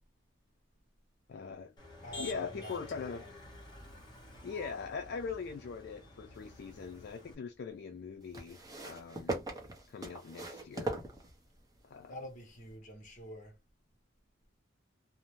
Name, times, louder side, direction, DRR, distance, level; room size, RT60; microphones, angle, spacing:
voice 1, 1.3-1.7 2.2-3.3 4.4-8.6 8.8-9.4 9.9-11.0 11.8-12.2, left 5 dB, 55° left, 0.3 m, -41 dB
Motor vehicle (road), 1.8-7.3, left 2 dB, 20° left, 1.1 m, -50 dB
voice 2, 2.0-3.3 12.1-13.5, equal, 40° left, 1.0 m, -47 dB
sound 1, 6.3-7.2 8.3-11.8 12.7-12.8, right 2 dB, 20° right, 0.7 m, -41 dB
2.6 x 2.0 x 3.0 m
head